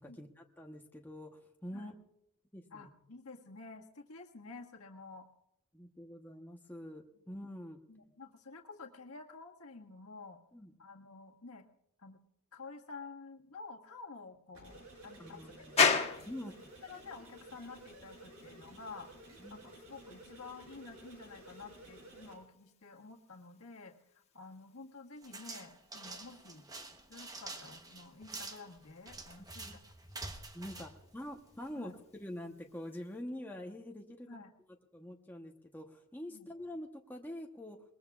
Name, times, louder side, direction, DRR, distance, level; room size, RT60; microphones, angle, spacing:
voice 1, 0.0-2.0 2.5-2.9 5.7-7.8 10.5-10.7 15.2-16.0 16.3-16.5 19.4-19.7 29.4-29.8 30.5-34.4 34.9-37.8, left 1 dB, 10° left, 1 dB, 1.0 m, -46 dB
voice 2, 2.7-5.3 7.9-10.4 10.8-11.6 12.0-12.2 12.5-16.1 16.8-19.1 19.5-24.0 24.3-26.7 27.1-29.7 30.8-30.9 31.8-31.9 34.3-34.5 36.3-36.5, left 4 dB, 80° left, 2 dB, 1.7 m, -50 dB
sound 1, 14.5-22.3, right 1 dB, 75° right, 5.6 m, -54 dB
sound 2, 15.8-33.2, left 5 dB, 30° left, 1.4 m, -40 dB
sound 3, 25.2-31.8, right 3 dB, 15° right, 0.9 m, -47 dB
22.0 x 21.0 x 2.4 m, 0.79 s
head